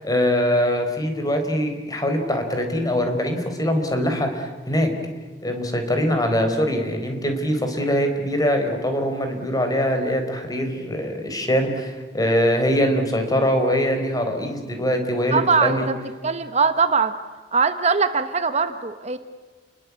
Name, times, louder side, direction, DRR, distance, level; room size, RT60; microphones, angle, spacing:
voice 1, 0.0-4.9 5.4-15.9, equal, 20° left, 5 dB, 4.2 m, -23 dB
voice 2, 15.3-16.0 16.2-17.1 17.5-19.2, right 5 dB, 40° right, 10 dB, 1.2 m, -21 dB
29.5 x 21.5 x 8.4 m, 1.4 s
head